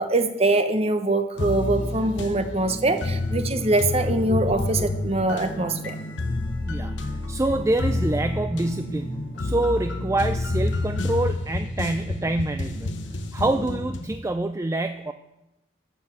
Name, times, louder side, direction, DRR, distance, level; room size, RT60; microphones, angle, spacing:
voice 1, 0.0-6.0, right 2 dB, 35° right, 8 dB, 0.9 m, -23 dB
sound 1, 1.3-13.3, right 1 dB, 25° left, 1.4 m, -42 dB
sound 2, 1.4-14.2, left 2 dB, 75° left, 1.0 m, -29 dB
voice 2, 6.6-12.9 13.3-15.1, right 2 dB, 15° right, 9 dB, 0.4 m, -26 dB
12.0 x 6.8 x 7.3 m, 0.94 s
head